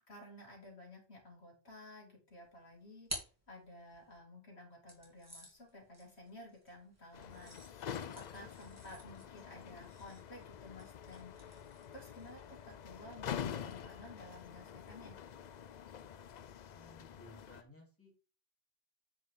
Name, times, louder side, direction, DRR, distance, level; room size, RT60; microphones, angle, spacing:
voice 1, 0.1-11.6 11.9-15.2, left 1 dB, 75° left, 0 dB, 2.9 m, -54 dB
sound 1, 2.4-4.2 4.9-12.5, right 1 dB, 15° right, 2.6 m, -52 dB
sound 2, 7.1-17.6, left 8 dB, 55° left, 0.5 m, -46 dB
voice 2, 16.7-18.1, equal, 10° left, -3 dB, 3.2 m, -59 dB
9.5 x 5.3 x 3.7 m, 0.35 s
omnidirectional pair, 1.1 m